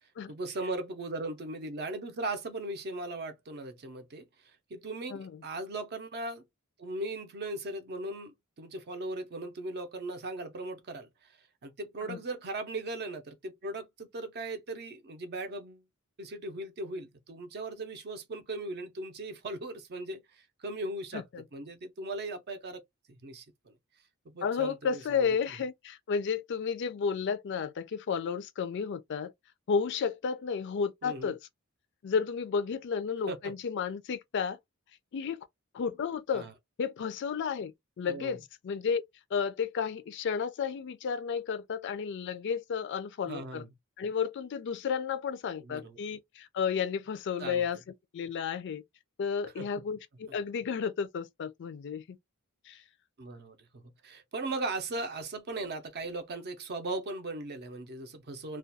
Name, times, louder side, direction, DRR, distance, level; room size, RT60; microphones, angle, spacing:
voice 1, 0.3-6.4 6.8-15.8 16.2-21.2 21.5-22.8 23.1-23.7 24.3-25.2 31.0-31.3 33.3-33.5 36.3-36.5 38.1-38.4 43.3-43.7 45.6-46.0 47.4-47.7 49.4-49.7 53.2-58.6, right 2 dB, 50° right, 0.5 m, -38 dB
voice 2, 21.1-21.4 24.4-29.3 29.7-31.4 32.0-34.6 35.1-35.4 35.7-36.5 36.8-37.7 38.0-39.0 39.3-43.6 44.0-47.8 48.1-48.8 49.2-52.2 52.7-52.8, left 6 dB, 55° left, 0.4 m, -32 dB
2.3 x 2.2 x 2.6 m
head